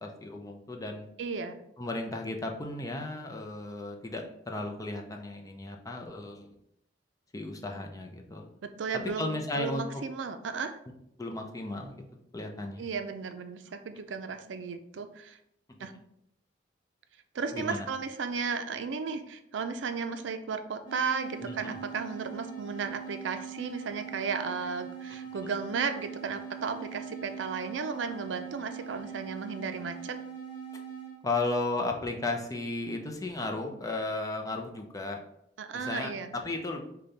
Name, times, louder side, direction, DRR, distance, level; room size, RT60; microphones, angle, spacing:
voice 1, 0.0-1.1 1.8-6.5 7.3-8.5 9.2-10.0 11.2-12.0 12.3-12.9 17.5-17.9 21.4-21.8 31.2-35.2 35.7-36.8, left 2 dB, 20° left, 3 dB, 0.5 m, -35 dB
voice 2, 1.2-1.6 8.6-9.3 9.5-10.8 12.8-15.4 15.8-15.9 17.3-30.2 35.6-36.3, right 5 dB, 85° right, 8 dB, 0.4 m, -34 dB
sound 1, 20.8-31.2, right 7 dB, 50° left, 0.9 m, -42 dB
5.1 x 2.2 x 4.0 m, 0.77 s
head